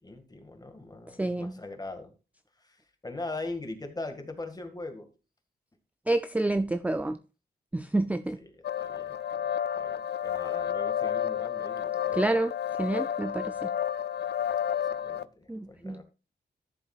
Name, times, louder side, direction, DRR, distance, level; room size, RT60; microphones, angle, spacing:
voice 1, 0.0-2.1 2.6-5.1 8.4-12.2 14.9-16.0, left 2 dB, 20° left, 6 dB, 1.8 m, -41 dB
voice 2, 1.2-1.5 6.1-7.2 7.7-8.4 12.1-12.5 12.8-13.7 15.5-16.0, right 2 dB, 10° right, 11 dB, 0.4 m, -28 dB
sound 1, 8.6-15.2, left 9 dB, 70° left, 0.4 m, -31 dB
13.0 x 7.3 x 2.4 m, 0.32 s
cardioid pair, 85°, 18 cm